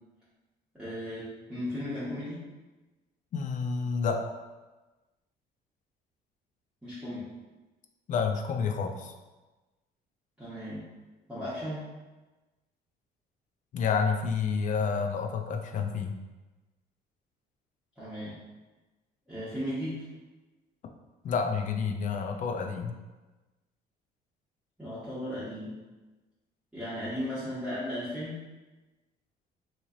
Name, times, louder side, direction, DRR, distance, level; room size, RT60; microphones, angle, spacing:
voice 1, 0.7-2.4 6.8-7.3 10.4-10.8 11.3-11.8 18.0-18.3 19.3-20.0 24.8-25.8 26.7-28.4, equal, 5° right, -13 dB, 1.2 m, -36 dB
voice 2, 3.3-4.2 8.1-9.1 13.7-16.2 21.2-22.9, left 5 dB, 50° left, 4 dB, 0.5 m, -29 dB
3.1 x 2.8 x 3.7 m, 1.2 s
cardioid pair, 110°, 17 cm